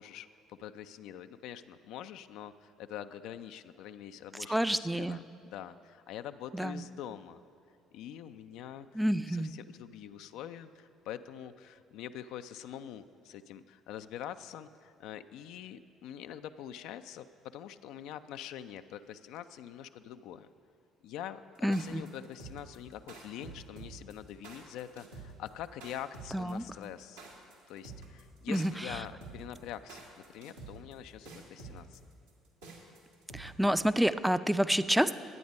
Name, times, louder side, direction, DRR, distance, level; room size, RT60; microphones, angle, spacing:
voice 1, 0.0-7.4 7.9-9.0 9.3-20.5 21.0-27.2 27.7-30.0 30.3-32.0, left 10 dB, 65° left, 10 dB, 0.3 m, -45 dB
voice 2, 4.5-5.2 6.5-6.8 8.9-9.5 21.6-22.0 26.3-26.6 28.5-29.0 33.3-35.1, equal, 5° right, 13 dB, 0.4 m, -29 dB
sound 1, 21.5-33.8, right 3 dB, 80° right, 1.6 m, -48 dB
11.0 x 8.5 x 5.3 m, 2.6 s
hypercardioid pair, 55°, 0 cm